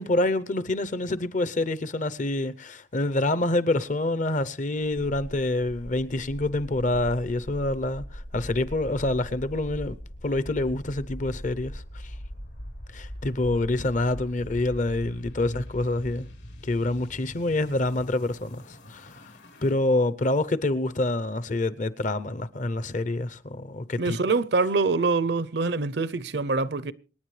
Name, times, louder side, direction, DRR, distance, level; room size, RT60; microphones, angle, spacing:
voice 1, 0.0-10.0 10.2-12.1 12.9-16.3 16.6-19.1 19.6-24.2, left 2 dB, 45° left, 0.7 m, -27 dB
sound 1, 5.5-19.7, equal, 85° left, 4.8 m, -41 dB
voice 2, 24.0-26.9, right 3 dB, 65° right, 0.7 m, -25 dB
26.5 x 9.8 x 3.3 m
head